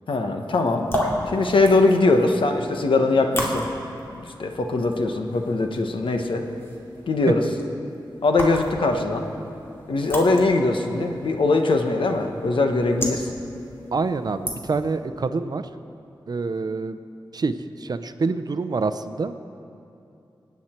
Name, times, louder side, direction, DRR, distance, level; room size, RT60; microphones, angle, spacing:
voice 1, 0.1-0.9 1.3-6.4 7.1-7.5 8.2-9.3 9.9-13.3, left 3 dB, 90° left, 4 dB, 1.1 m, -21 dB
sound 1, 0.6-15.0, equal, 30° left, 2.4 m, -35 dB
voice 2, 13.9-15.6 16.3-17.0 17.3-19.3, right 4 dB, 50° right, 11 dB, 0.6 m, -26 dB
26.0 x 9.5 x 4.4 m, 2.7 s
wide cardioid pair, 120°, 8 cm